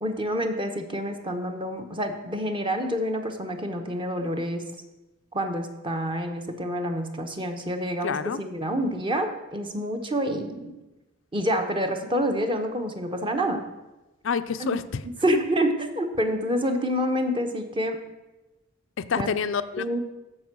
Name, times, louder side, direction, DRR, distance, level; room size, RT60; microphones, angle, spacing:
voice 1, 0.0-4.6 5.3-10.7 11.3-13.6 14.6-14.7 15.2-18.0 19.2-19.3 19.8-20.0, equal, 25° right, 5 dB, 1.0 m, -27 dB
voice 2, 8.0-8.4 14.2-15.0 19.0-20.0, left 6 dB, 65° left, 11 dB, 0.4 m, -28 dB
14.0 x 5.4 x 6.1 m, 1.1 s
head